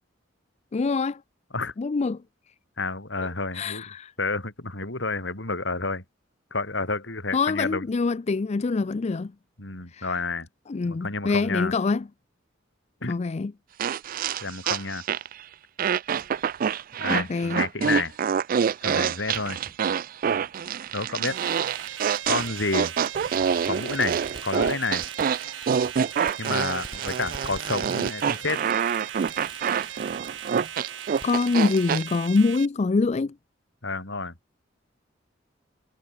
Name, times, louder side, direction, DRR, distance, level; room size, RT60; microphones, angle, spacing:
voice 1, 0.7-1.2 1.8-2.2 3.5-4.1 7.3-9.3 9.9-10.1 10.7-12.0 13.1-13.5 17.1-17.6 31.2-33.3, left 4 dB, 35° left, 0.4 m, -25 dB
voice 2, 2.8-3.8 4.2-6.0 6.5-7.8 9.6-10.5 10.8-11.7 13.0-13.1 14.4-15.0 17.0-18.2 18.8-19.7 20.9-21.4 22.3-22.9 23.6-25.0 26.4-28.6 33.8-34.3, left 3 dB, 70° left, 4.4 m, -30 dB
sound 1, 13.8-15.4 15.8-32.0, right 7 dB, 45° right, 0.3 m, -26 dB
Fireworks, 19.3-19.4 20.6-20.7 21.9-22.0 23.7-32.4, right 3 dB, 25° right, 7.9 m, -46 dB
sound 2, 21.3-32.7, right 9 dB, 75° right, 3.8 m, -39 dB
head